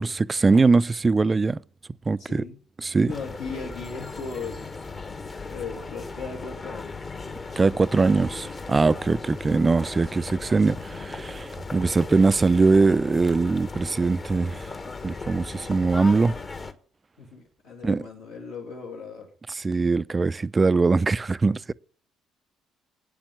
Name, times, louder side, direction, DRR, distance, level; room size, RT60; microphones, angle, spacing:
voice 1, 0.0-1.6 2.1-2.4 2.8-3.1 7.6-14.7 15.0-16.3 17.8-18.0 19.6-21.7, right 4 dB, 25° right, 0.4 m, -21 dB
voice 2, 2.2-2.5 3.1-4.7 5.4-7.0 17.2-19.3, left 4 dB, 80° left, 2.5 m, -37 dB
sound 1, 3.1-16.7, left 4 dB, 35° left, 1.3 m, -37 dB
9.0 x 7.2 x 7.7 m
figure-of-eight pair, 50°, 0 cm